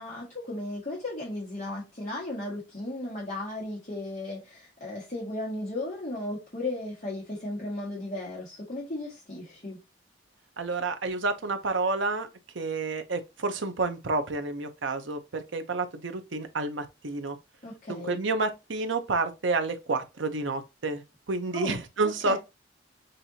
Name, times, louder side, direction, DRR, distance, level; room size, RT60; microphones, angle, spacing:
voice 1, 0.0-9.8 17.6-18.2 21.5-22.4, left 2 dB, 40° left, 1.6 m, -35 dB
voice 2, 10.6-12.3 12.5-17.4 17.9-21.0 21.3-22.4, right 3 dB, 80° right, 0.8 m, -29 dB
6.5 x 2.7 x 2.8 m
head